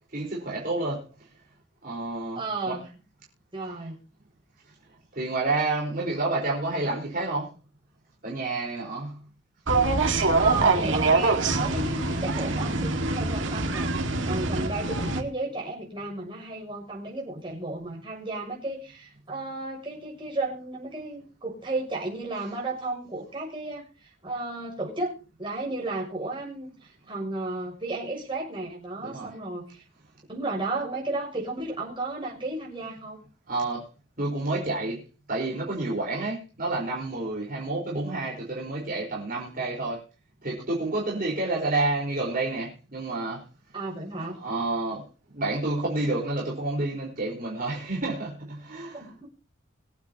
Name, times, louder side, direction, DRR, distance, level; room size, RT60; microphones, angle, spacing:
voice 1, 0.1-1.0 1.8-2.8 5.2-7.5 8.2-9.2 22.3-22.5 29.0-29.4 33.5-33.9 34.2-35.0 35.3-40.0 40.4-43.4 44.2-45.1 45.3-49.1, right 2 dB, 45° right, 4.5 m, -29 dB
voice 2, 2.3-2.9 3.5-3.9 10.4-25.1 25.4-29.8 30.3-33.2 37.5-37.6 43.7-44.4 48.9-49.3, right 2 dB, 25° right, 6.8 m, -33 dB
sound 1, 9.7-15.2, right 3 dB, 70° right, 1.9 m, -24 dB
25.0 x 8.7 x 2.9 m
head